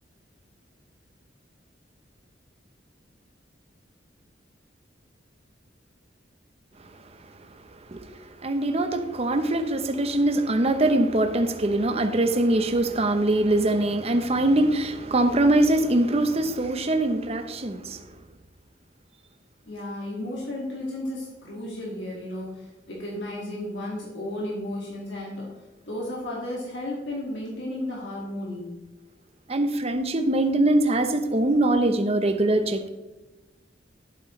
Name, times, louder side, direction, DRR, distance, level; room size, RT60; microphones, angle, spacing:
voice 1, 7.9-18.0 29.5-32.9, right 1 dB, 35° right, 0.8 m, -23 dB
voice 2, 19.7-25.4 25.9-28.8, left 1 dB, 75° left, 2.1 m, -33 dB
11.0 x 8.4 x 3.2 m
head